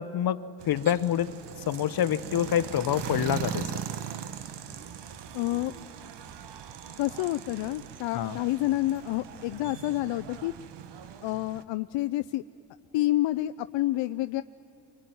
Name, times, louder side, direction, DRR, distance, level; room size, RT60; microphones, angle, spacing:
voice 1, 0.0-1.3 1.7-3.7 8.1-8.4, left 10 dB, 50° left, 13 dB, 0.9 m, -27 dB
sound 1, 0.6-11.6, right 9 dB, 60° right, 1.2 m, -40 dB
voice 2, 5.3-5.7 7.0-10.5 11.2-12.4 12.9-14.4, left 16 dB, 70° left, 12 dB, 0.6 m, -28 dB
26.5 x 23.5 x 9.4 m, 2.6 s
cardioid pair, 90°, 46 cm